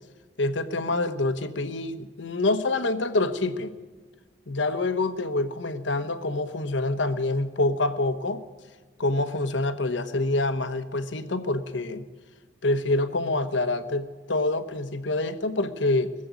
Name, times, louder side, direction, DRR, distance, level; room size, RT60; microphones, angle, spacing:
voice 1, 0.4-3.7 4.5-8.4 9.0-12.0 12.6-16.1, left 2 dB, 75° left, 10 dB, 1.0 m, -26 dB
21.0 x 7.7 x 8.2 m, 1.4 s
head